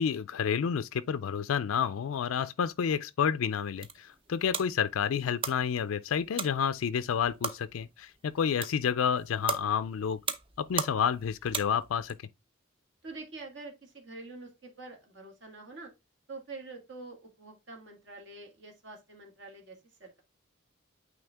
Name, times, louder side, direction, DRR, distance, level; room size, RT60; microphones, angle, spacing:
voice 1, 0.0-10.2 10.6-12.3, left 7 dB, 80° left, 0.4 m, -30 dB
sound 1, 3.5-12.1, right 5 dB, 25° right, 0.6 m, -39 dB
voice 2, 13.0-15.9 16.3-20.2, right 3 dB, 60° right, 1.7 m, -46 dB
8.9 x 3.2 x 3.4 m
head